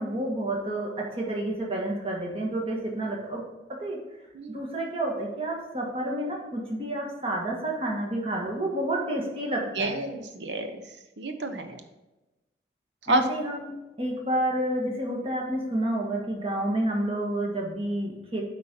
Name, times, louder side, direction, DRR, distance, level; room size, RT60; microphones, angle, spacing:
voice 1, 0.0-3.4 3.7-4.0 4.5-9.9 13.1-18.4, right 1 dB, 35° right, -1 dB, 1.6 m, -29 dB
voice 2, 4.3-4.6 9.8-10.7 11.2-11.8 13.1-13.2, right 2 dB, 80° right, 7 dB, 0.9 m, -28 dB
8.1 x 4.4 x 5.3 m, 1.0 s
head